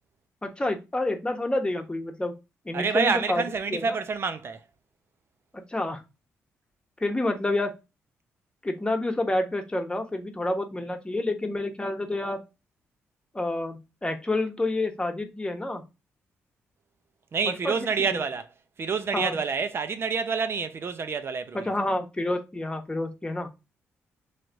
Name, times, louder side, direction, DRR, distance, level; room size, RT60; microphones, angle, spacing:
voice 1, 0.4-2.3 2.6-3.4 3.7-4.0 5.5-6.0 7.0-7.7 8.6-12.4 13.3-15.8 17.4-17.9 19.1-19.4 21.5-23.5, left 2 dB, 20° left, 1.1 m, -28 dB
voice 2, 2.7-4.6 17.3-18.5 18.8-21.7, right 5 dB, 50° right, 0.7 m, -27 dB
3.2 x 3.1 x 3.8 m
supercardioid pair, 60°, 5 cm